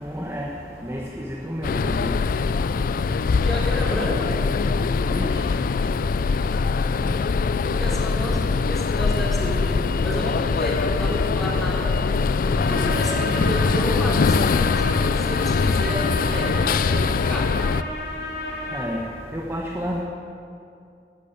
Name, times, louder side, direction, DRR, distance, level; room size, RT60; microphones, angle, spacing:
voice 1, 0.0-0.5 0.8-2.1 5.1-5.3 18.7-19.0 19.3-20.0, equal, 15° right, -2 dB, 1.3 m, -30 dB
sound 1, 1.6-17.8, left 4 dB, 55° left, 0.4 m, -22 dB
voice 2, 3.3-4.7 7.6-12.0 12.4-17.7, equal, ahead, -5 dB, 3.4 m, -31 dB
Trumpet, 12.6-19.1, left 2 dB, 70° left, 3.4 m, -32 dB
13.5 x 10.0 x 9.0 m, 2.5 s
head